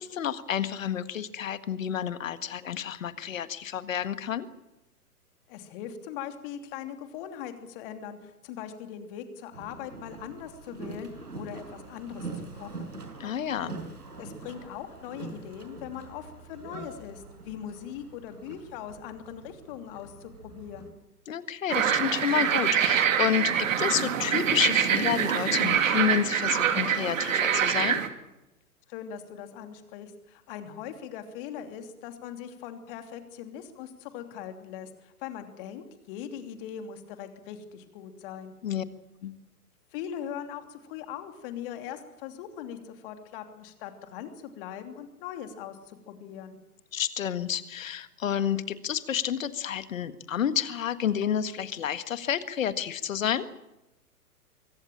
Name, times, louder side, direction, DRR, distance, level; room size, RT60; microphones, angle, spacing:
voice 1, 0.0-4.5 13.2-13.7 21.3-28.0 38.6-38.8 39.2-39.3 46.9-53.5, left 9 dB, 55° left, 12 dB, 1.8 m, -30 dB
voice 2, 5.5-12.3 12.5-12.9 14.2-20.9 28.9-38.5 39.9-46.6, left 9 dB, 35° left, 7 dB, 3.0 m, -40 dB
Boat Water vehicle, 9.5-20.9, right 3 dB, 80° right, 5.6 m, -44 dB
sound 1, 21.7-28.1, right 8 dB, 55° right, 2.6 m, -25 dB
24.0 x 17.0 x 8.8 m, 0.94 s
figure-of-eight pair, 115°, 46 cm